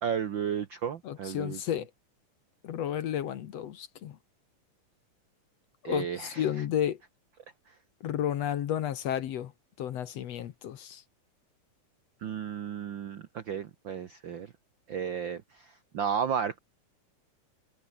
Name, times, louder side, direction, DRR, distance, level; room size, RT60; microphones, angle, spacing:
voice 1, 0.0-1.6 5.8-6.6 7.7-7.8 12.2-14.5 14.9-16.6, right 7 dB, 80° right, 1.0 m, -33 dB
voice 2, 1.1-1.9 2.6-4.2 5.8-7.0 8.0-9.5 9.8-11.0, left 10 dB, 65° left, 2.0 m, -32 dB
omnidirectional pair, 3.8 m